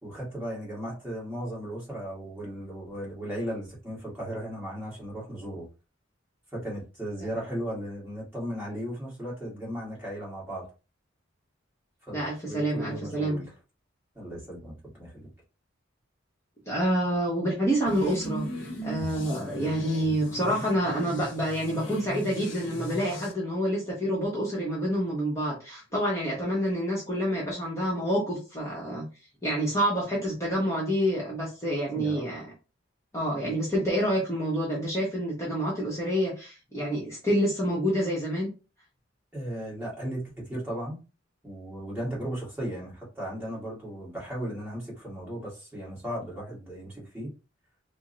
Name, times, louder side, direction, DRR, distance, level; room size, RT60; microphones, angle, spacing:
voice 1, 0.0-5.7 6.5-10.7 12.1-13.5 14.1-15.3 19.3-19.5 31.9-32.3 39.3-41.0 41.4-47.3, equal, 10° right, -6 dB, 1.7 m, -36 dB
voice 2, 12.1-13.4 16.7-18.5 18.8-29.0 29.4-32.5 33.1-38.5, equal, 15° left, -7 dB, 1.0 m, -28 dB
sound 1, 17.9-23.3, right 1 dB, 60° left, 0.9 m, -37 dB
3.4 x 2.1 x 3.9 m, 0.31 s
head